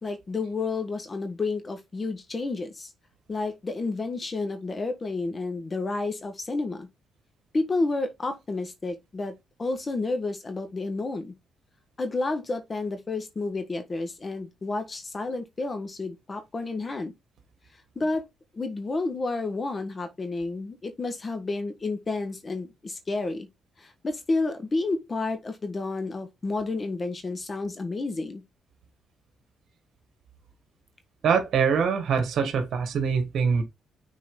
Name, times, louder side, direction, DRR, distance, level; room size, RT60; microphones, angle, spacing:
voice 1, 0.0-2.9 3.3-6.9 7.5-11.3 12.0-17.1 17.9-18.3 18.5-23.5 23.8-28.4, left 3 dB, 30° left, 1.4 m, -30 dB
voice 2, 31.2-33.6, right 6 dB, 65° right, 1.6 m, -24 dB
6.3 x 4.1 x 3.9 m
cardioid pair, 90°, 0 cm